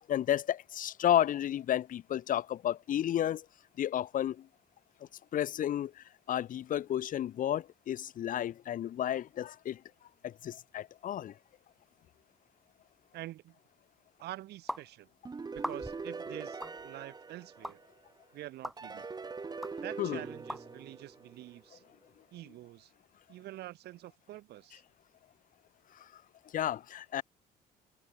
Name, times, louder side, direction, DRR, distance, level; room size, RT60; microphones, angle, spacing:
voice 1, 0.1-3.4 3.8-4.5 5.3-9.8 10.2-11.3 20.0-20.2 26.5-27.2, left 11 dB, 55° left, 1.1 m, -32 dB
voice 2, 13.1-13.6 14.2-15.1 15.5-17.8 18.3-19.1 19.8-21.8 22.3-22.9 23.3-24.8, right 15 dB, 75° right, 6.3 m, -46 dB
sound 1, 14.7-14.8 15.5-16.1 16.6-16.8 17.6-17.7 18.6-18.8 19.6-19.7 20.5-20.6, equal, ahead, 1.6 m, -38 dB
sound 2, 15.3-18.1 18.8-21.6, right 4 dB, 25° right, 2.8 m, -42 dB
cardioid pair, 110°, 17 cm